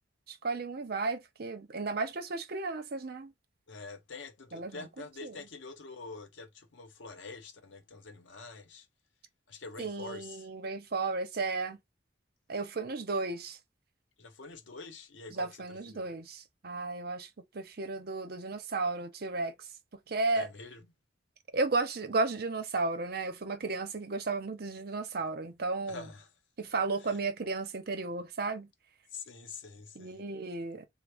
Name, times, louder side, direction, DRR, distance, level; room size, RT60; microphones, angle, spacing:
voice 1, 0.3-3.3 4.5-4.9 5.2-5.3 9.8-11.8 12.5-13.6 15.3-17.3 17.5-19.5 20.1-20.5 21.5-26.1 26.6-28.7 30.0-30.9, right 3 dB, 55° right, 0.7 m, -34 dB
voice 2, 3.7-8.9 9.5-10.5 14.2-16.1 20.3-20.9 25.9-26.3 27.0-27.2 29.1-30.2, left 4 dB, 90° left, 0.8 m, -46 dB
3.5 x 2.0 x 3.4 m
head